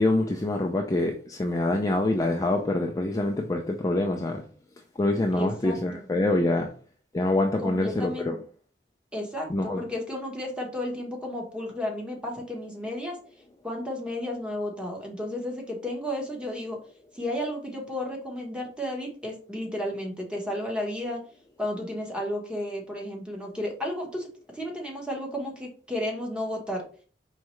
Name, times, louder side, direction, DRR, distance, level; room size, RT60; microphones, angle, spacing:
voice 1, 0.0-4.4 5.0-6.7 7.1-8.3 9.5-9.8, left 2 dB, 20° left, 2 dB, 0.4 m, -25 dB
voice 2, 5.3-6.1 7.6-8.4 9.1-13.2 13.6-16.8 17.1-21.2 21.6-24.3 24.5-26.8, left 1 dB, 5° right, 0 dB, 1.1 m, -33 dB
4.6 x 3.2 x 3.1 m, 0.42 s
head